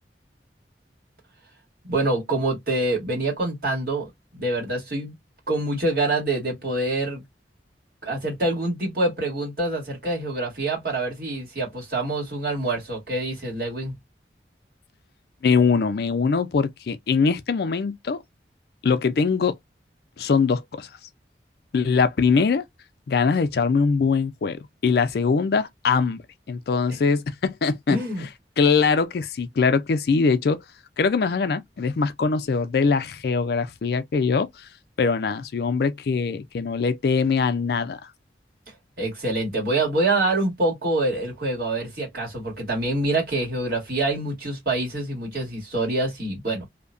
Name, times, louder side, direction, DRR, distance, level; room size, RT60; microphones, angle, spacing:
voice 1, 1.8-5.1 5.5-7.2 8.0-13.9 27.9-28.2 39.0-46.6, right 2 dB, 55° right, 1.6 m, -26 dB
voice 2, 15.4-18.2 18.8-19.6 20.2-20.9 21.7-22.6 23.1-26.2 26.5-28.3 28.6-30.6 31.0-34.7 35.0-38.0, left 5 dB, 60° left, 0.4 m, -22 dB
2.7 x 2.1 x 2.4 m
head